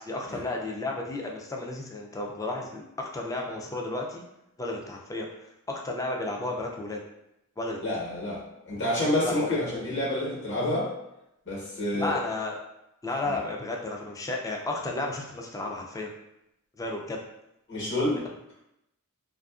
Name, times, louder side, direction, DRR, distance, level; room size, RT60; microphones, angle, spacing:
voice 1, 0.0-4.2 4.6-5.3 5.7-7.0 7.6-7.8 9.2-9.5 12.0-12.6 13.0-16.1 16.8-17.2, left 2 dB, 15° left, 0 dB, 0.3 m, -33 dB
voice 2, 7.8-10.9 11.4-12.2 13.2-13.3 17.7-18.2, left 1 dB, 55° left, -5 dB, 1.1 m, -28 dB
2.6 x 2.4 x 2.4 m, 0.85 s
head